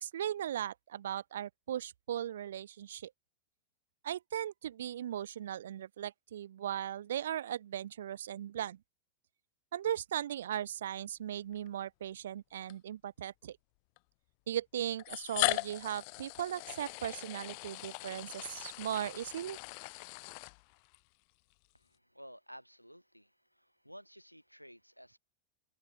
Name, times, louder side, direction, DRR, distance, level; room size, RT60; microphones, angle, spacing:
voice 1, 0.0-3.1 4.0-8.8 9.7-13.6 14.5-19.6, right 11 dB, 60° right, 0.4 m, -38 dB
sound 1, 11.5-11.7 12.7-12.8 14.0-14.1 15.0-21.0, left 38 dB, 45° left, 0.3 m, -38 dB
voice 2, 21.7-25.2, equal, 90° right, 4.0 m, -54 dB
open air
figure-of-eight pair, 90°, 0 cm